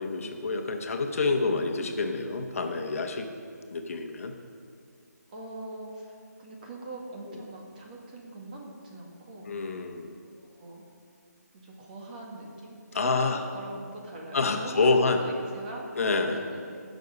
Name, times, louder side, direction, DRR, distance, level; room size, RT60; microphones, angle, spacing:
voice 1, 0.0-3.3 3.7-4.3 9.5-10.1 12.9-13.4 14.3-15.2 16.0-16.4, left 3 dB, 55° left, 4 dB, 1.1 m, -27 dB
voice 2, 5.3-9.5 10.2-10.8 11.5-16.8, right 1 dB, 30° right, -1 dB, 1.9 m, -42 dB
15.0 x 6.5 x 5.3 m, 2.3 s
hypercardioid pair, 165°, 9 cm